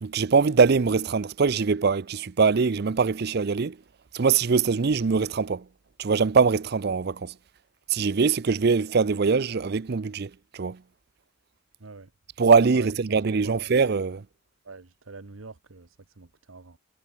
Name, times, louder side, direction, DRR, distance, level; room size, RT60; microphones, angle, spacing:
voice 1, 0.0-3.8 4.1-5.7 6.0-7.3 7.9-10.8 12.4-14.2, right 5 dB, 55° right, 0.5 m, -22 dB
voice 2, 13.3-13.7 14.6-16.8, right 3 dB, 90° right, 1.2 m, -44 dB
head